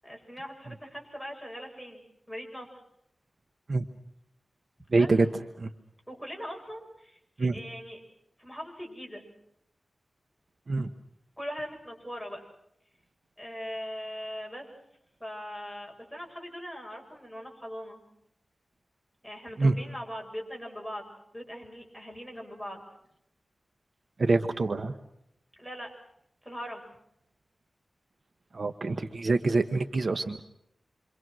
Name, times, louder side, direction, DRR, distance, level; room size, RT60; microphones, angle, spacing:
voice 1, 0.0-2.7 4.9-5.1 6.1-8.0 8.4-9.2 11.4-12.4 13.4-14.7 15.2-18.0 19.2-22.8 25.6-25.9 26.4-26.9, equal, 5° right, 1 dB, 7.5 m, -40 dB
voice 2, 4.9-5.3 5.6-5.7 7.4-7.5 10.7-10.9 19.6-19.7 24.2-24.9 28.5-30.4, right 3 dB, 60° right, 9 dB, 1.1 m, -25 dB
28.0 x 25.5 x 6.3 m, 0.77 s
wide cardioid pair, 75°, 0 cm